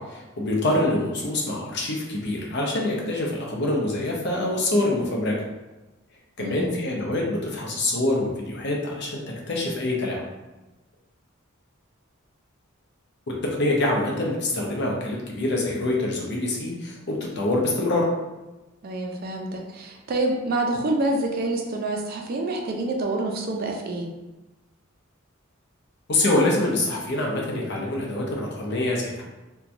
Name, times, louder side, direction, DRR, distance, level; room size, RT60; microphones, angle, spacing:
voice 1, 0.0-5.4 6.4-10.3 13.6-18.1 26.1-29.2, left 2 dB, 55° left, -2 dB, 0.6 m, -25 dB
voice 2, 6.4-6.8 18.8-24.1, right 2 dB, 45° right, 1 dB, 0.4 m, -27 dB
2.9 x 2.2 x 2.5 m, 1.1 s
head